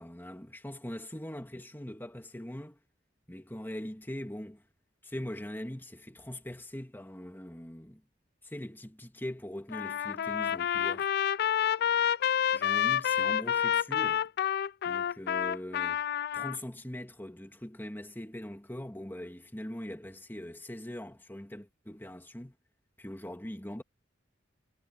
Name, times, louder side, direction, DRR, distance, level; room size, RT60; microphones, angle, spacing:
voice 1, 0.0-2.8 3.3-4.6 5.0-8.0 8.4-11.1 12.5-14.3 14.8-16.0 16.3-22.5 23.0-23.8, left 1 dB, 10° left, 2.3 m, -41 dB
Trumpet, 9.7-16.6, left 9 dB, 55° left, 0.4 m, -29 dB
head